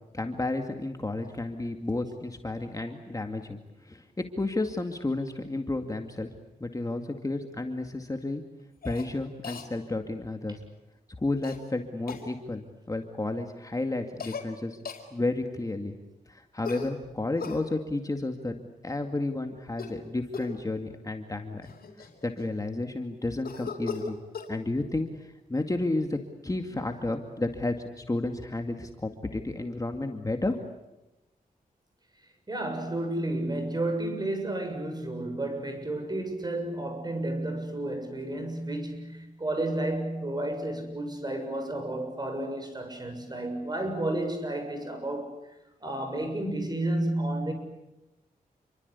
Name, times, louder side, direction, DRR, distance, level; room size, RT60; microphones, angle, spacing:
voice 1, 0.1-6.3 6.6-8.4 8.8-10.6 11.2-14.8 15.1-16.0 16.3-18.6 18.8-21.7 22.0-24.2 24.5-30.6, left 2 dB, 20° left, 5 dB, 2.2 m, -32 dB
Cough, 8.8-9.1 9.4-9.7 11.4-11.6 12.1-12.3 14.2-14.5 14.9-15.1 16.6-17.6 19.7-20.0 20.3-20.6 21.3-21.4 21.6-22.6 23.4-24.5, left 5 dB, 80° left, 5.0 m, -38 dB
voice 2, 32.5-45.3 45.8-47.5, right 1 dB, 25° right, 6 dB, 7.3 m, -31 dB
29.0 x 24.0 x 8.3 m, 0.96 s
wide cardioid pair, 85°, 15 cm